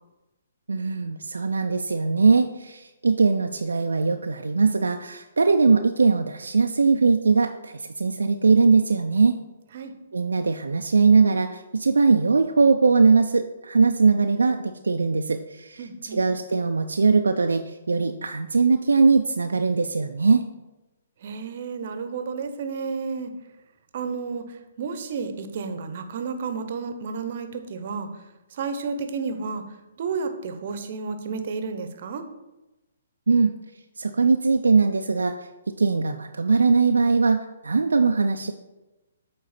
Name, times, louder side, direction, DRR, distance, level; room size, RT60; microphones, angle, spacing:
voice 1, 0.7-9.4 10.1-20.4 33.3-33.5 34.0-35.3 35.8-38.5, right 4 dB, 80° right, 5 dB, 0.3 m, -21 dB
voice 2, 15.8-16.2 21.2-23.3 23.9-28.1 28.5-29.6 30.0-32.2, right 5 dB, 50° right, 8 dB, 0.8 m, -31 dB
8.4 x 3.8 x 4.3 m, 1.0 s
figure-of-eight pair, 135°, 0 cm